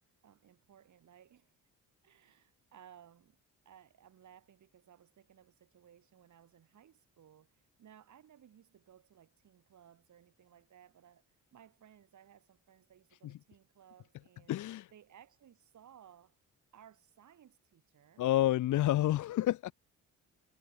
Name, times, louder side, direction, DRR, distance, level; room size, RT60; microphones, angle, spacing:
voice 1, 0.2-1.6 2.0-3.4 3.6-14.5 14.9-16.4 16.7-18.3, right 9 dB, 60° right, 2.7 m, -60 dB
voice 2, 14.5-14.9 18.2-19.7, left 14 dB, 60° left, 0.5 m, -29 dB
cardioid pair, 110°, 34 cm